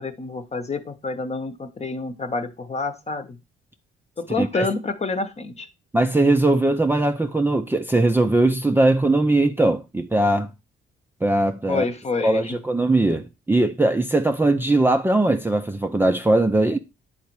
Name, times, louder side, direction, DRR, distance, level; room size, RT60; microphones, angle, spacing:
voice 1, 0.0-3.4 4.2-5.7 11.7-12.6, left 3 dB, 35° left, 1.0 m, -28 dB
voice 2, 5.9-10.5 11.2-11.8 12.2-16.8, right 2 dB, 10° right, 0.6 m, -20 dB
9.3 x 4.1 x 4.6 m
cardioid pair, 90°, 20 cm